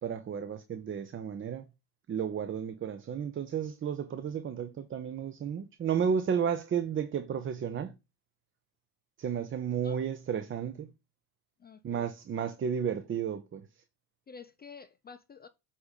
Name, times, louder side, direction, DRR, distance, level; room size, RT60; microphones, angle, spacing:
voice 1, 0.0-1.7 2.1-7.9 9.2-10.9 11.8-13.7, right 7 dB, 30° right, 0.6 m, -32 dB
voice 2, 11.6-12.1 14.3-15.5, left 5 dB, 25° left, 0.5 m, -50 dB
7.8 x 2.8 x 5.1 m
hypercardioid pair, 65°, 43 cm